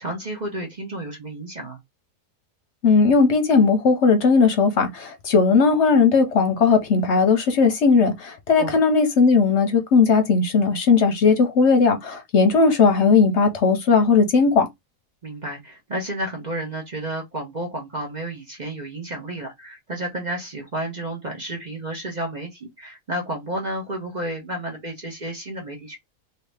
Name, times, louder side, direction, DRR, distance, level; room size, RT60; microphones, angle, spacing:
voice 1, 0.0-1.8 8.6-8.8 15.2-26.0, right 1 dB, 40° right, 0.8 m, -31 dB
voice 2, 2.8-14.7, left 4 dB, 60° left, 0.9 m, -17 dB
2.8 x 2.7 x 3.2 m
omnidirectional pair, 1.5 m